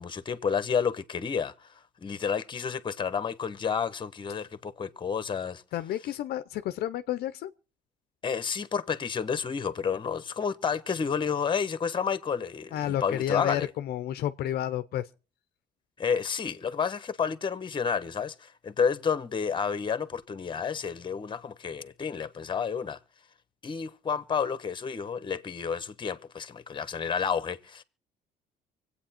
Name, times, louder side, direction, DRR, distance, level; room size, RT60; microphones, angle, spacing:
voice 1, 0.0-5.6 8.2-13.7 16.0-23.0 23.6-27.8, left 6 dB, 30° left, 1.1 m, -30 dB
voice 2, 5.7-7.5 12.7-15.1, left 12 dB, 70° left, 0.7 m, -31 dB
25.0 x 8.6 x 4.3 m
cardioid pair, 110°, 17 cm